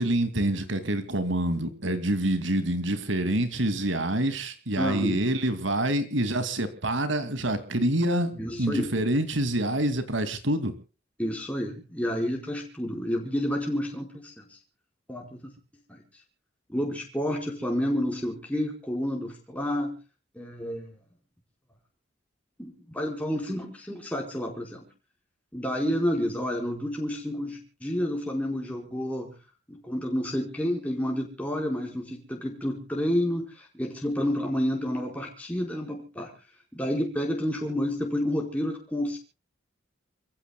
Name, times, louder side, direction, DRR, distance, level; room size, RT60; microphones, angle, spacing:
voice 1, 0.0-8.3 8.6-10.7, right 1 dB, 70° right, 10 dB, 2.5 m, -26 dB
voice 2, 4.8-5.2 8.4-8.9 11.2-14.6 15.1-15.5 15.9-16.0 16.7-20.0 20.3-20.9 22.6-24.9 25.5-29.3 29.7-36.3 36.7-39.2, equal, 5° left, 0 dB, 4.7 m, -30 dB
29.0 x 16.0 x 2.3 m, 0.34 s
head